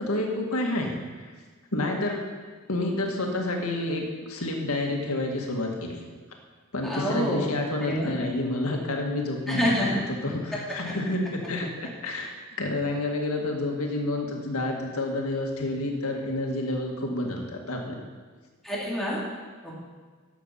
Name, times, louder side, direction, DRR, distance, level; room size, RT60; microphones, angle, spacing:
voice 1, 0.0-1.3 1.7-2.3 2.7-6.0 6.7-12.3 12.6-18.0, left 2 dB, 85° left, 1 dB, 1.8 m, -29 dB
voice 2, 6.8-7.5 7.8-8.1 9.5-10.0 10.5-10.6 18.6-19.2 19.6-19.7, equal, ahead, -7 dB, 3.2 m, -27 dB
13.0 x 7.7 x 5.6 m, 1.4 s
head